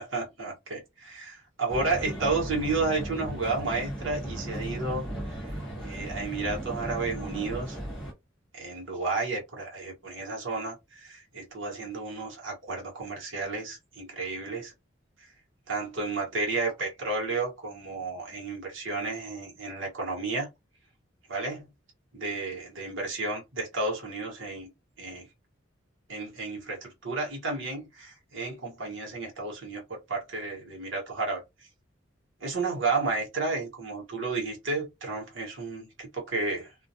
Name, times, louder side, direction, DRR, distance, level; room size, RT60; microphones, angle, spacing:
voice 1, 0.0-5.6 5.8-7.8 8.5-14.7 15.2-15.3 15.7-20.5 21.3-21.7 22.1-24.7 25.0-25.3 26.1-31.4 32.4-36.7, right 3 dB, 70° right, 1.0 m, -32 dB
sound 1, 1.7-8.1, right 1 dB, ahead, 1.1 m, -36 dB
2.2 x 2.2 x 2.7 m
head